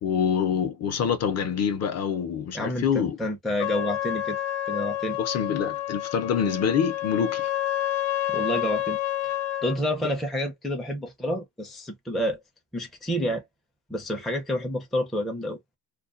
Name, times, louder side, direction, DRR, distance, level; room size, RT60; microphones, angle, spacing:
voice 1, 0.0-3.2 5.2-7.5, left 7 dB, 40° left, 0.7 m, -26 dB
voice 2, 2.5-4.4 4.7-5.2 8.3-9.0 9.2-9.3 9.6-12.4 12.7-13.4 13.9-15.6, equal, ahead, 0.5 m, -29 dB
Trumpet, 3.6-9.8, left 14 dB, 80° left, 0.8 m, -29 dB
2.4 x 2.2 x 2.4 m
cardioid pair, 130°, 40 cm